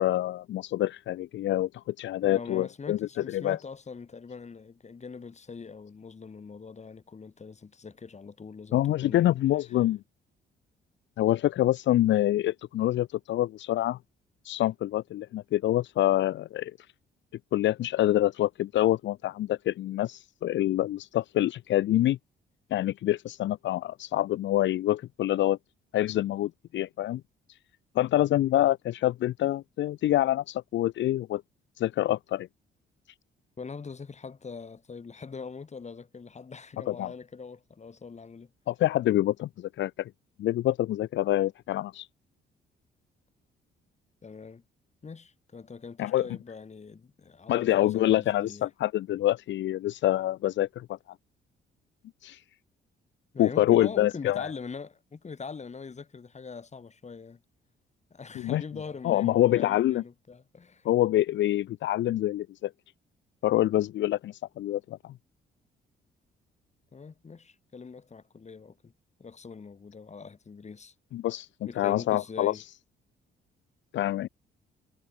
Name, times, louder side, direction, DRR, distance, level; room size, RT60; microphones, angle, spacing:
voice 1, 0.0-3.6 8.7-10.0 11.2-14.0 14.4-16.7 17.5-22.2 22.7-25.6 25.9-27.2 27.9-31.4 31.8-32.5 36.9-37.1 38.7-40.1 40.4-42.1 46.0-46.4 47.5-50.9 52.2-52.4 53.4-54.5 58.3-60.0 60.8-62.7 63.4-65.1 71.1-72.8 73.9-74.3, left 14 dB, 70° left, 0.6 m, -26 dB
voice 2, 2.2-9.4 33.6-38.5 44.2-44.6 45.0-48.7 53.3-57.4 58.1-60.9 66.9-68.9 69.2-70.9 71.7-72.6, left 5 dB, 35° left, 6.0 m, -42 dB
cardioid pair, 90°, 20 cm